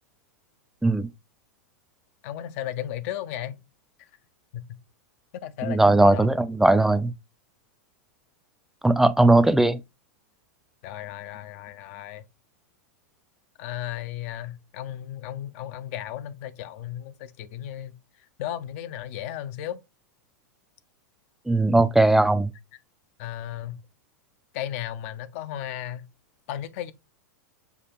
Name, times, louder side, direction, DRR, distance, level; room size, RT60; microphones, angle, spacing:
voice 1, 2.2-3.6 4.5-4.6 5.3-6.3 10.8-12.2 13.6-17.9 18.4-19.8 23.2-23.8 24.5-26.1 26.5-26.9, left 11 dB, 55° left, 0.6 m, -35 dB
voice 2, 5.7-7.1 8.8-9.8 21.5-22.5, right 2 dB, 5° right, 0.4 m, -19 dB
6.8 x 2.4 x 3.0 m
hypercardioid pair, 105°, 9 cm